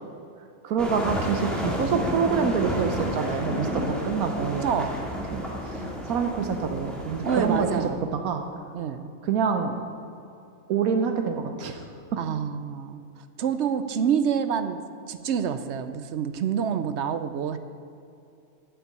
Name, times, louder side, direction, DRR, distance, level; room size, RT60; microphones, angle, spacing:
voice 1, 0.6-4.7 5.3-8.4 9.2-9.7 10.7-11.8, right 6 dB, 80° right, 5 dB, 1.2 m, -27 dB
sound 1, 0.8-7.9, equal, ahead, 1.7 m, -30 dB
voice 2, 4.4-4.9 7.2-8.1 8.7-9.1 12.2-13.0 13.4-14.8 15.1-17.6, right 7 dB, 65° right, 10 dB, 0.8 m, -27 dB
8.9 x 7.3 x 8.4 m, 2.7 s
omnidirectional pair, 1.5 m